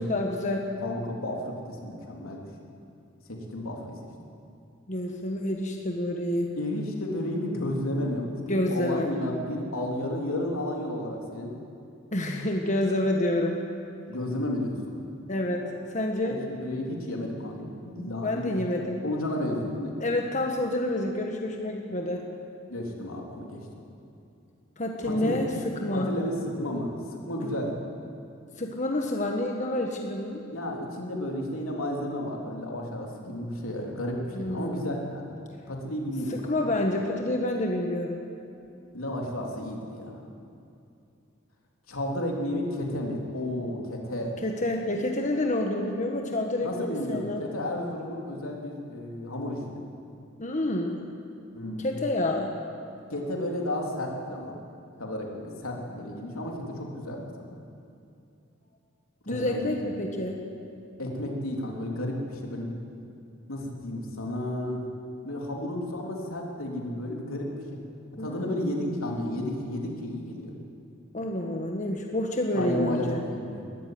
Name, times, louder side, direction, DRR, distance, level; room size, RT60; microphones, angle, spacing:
voice 1, 0.0-0.6 4.9-6.5 8.5-9.1 12.1-13.6 15.3-15.6 15.9-16.4 18.2-19.0 20.0-22.2 24.8-26.1 27.4-27.6 28.6-30.4 34.3-35.0 36.3-38.2 44.4-47.4 50.4-50.9 51.8-52.5 59.3-60.4 68.2-68.7 71.1-73.2, left 1 dB, 35° left, 1 dB, 1.5 m, -28 dB
voice 2, 0.8-2.5 3.3-4.0 6.6-11.6 14.1-15.0 16.3-18.5 19.0-20.0 22.7-23.7 25.0-25.4 25.9-27.7 30.5-35.3 35.7-36.8 38.9-40.2 41.9-44.3 46.6-49.8 51.5-52.0 53.1-54.5 55.0-57.6 59.3-59.8 61.0-62.7 63.5-64.8 65.2-67.8 68.2-70.5 72.5-73.6, left 1 dB, 90° left, 0 dB, 3.5 m, -32 dB
20.5 x 14.0 x 9.5 m, 2.6 s
head